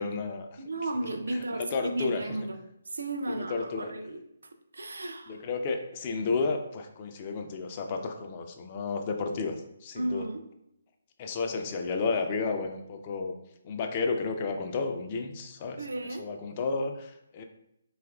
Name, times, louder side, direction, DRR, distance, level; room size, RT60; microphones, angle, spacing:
voice 1, 0.0-0.6 1.7-2.2 3.5-3.9 5.3-10.2 11.2-13.3 13.6-15.8 16.2-17.4, left 4 dB, 35° left, 4 dB, 0.3 m, -32 dB
voice 2, 0.6-5.4 10.0-10.5 15.8-16.3, right 2 dB, 70° right, 7 dB, 0.3 m, -35 dB
2.8 x 2.4 x 2.3 m, 0.81 s
figure-of-eight pair, 140°, 0 cm